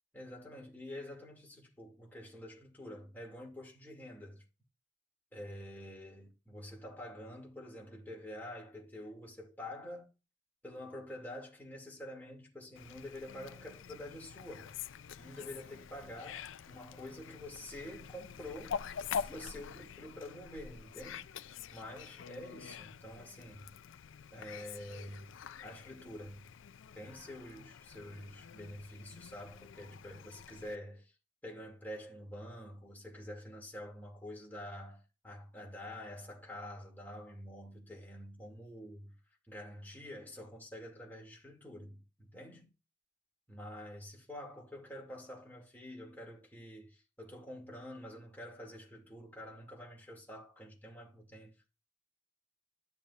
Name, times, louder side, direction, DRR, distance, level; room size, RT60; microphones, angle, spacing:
voice 1, 0.1-4.4 5.3-10.1 10.6-14.7 15.2-18.8 19.1-21.3 21.7-23.7 24.3-25.4 25.6-26.5 26.9-31.1 31.4-39.1 39.5-42.7 43.5-51.7, left 1 dB, 10° left, 2.4 m, -47 dB
Fowl, 12.8-30.8, left 7 dB, 75° left, 0.4 m, -46 dB
12.5 x 7.1 x 2.5 m
head